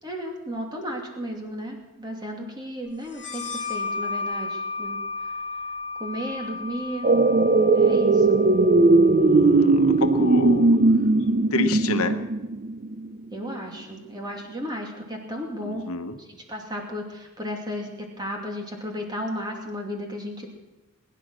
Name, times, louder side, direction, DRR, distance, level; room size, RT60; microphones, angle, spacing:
voice 1, 0.0-5.3 6.0-8.4 13.3-15.8 16.2-20.5, equal, 20° right, 1 dB, 2.6 m, -34 dB
sound 1, 3.1-10.4, left 4 dB, 35° left, 3.0 m, -34 dB
sound 2, 7.0-13.2 13.5-13.6, right 3 dB, 35° right, 0.5 m, -19 dB
voice 2, 9.2-10.8 11.5-12.2 15.6-16.2, left 3 dB, 75° left, 7 dB, 1.1 m, -28 dB
21.0 x 10.5 x 6.3 m, 1.1 s
head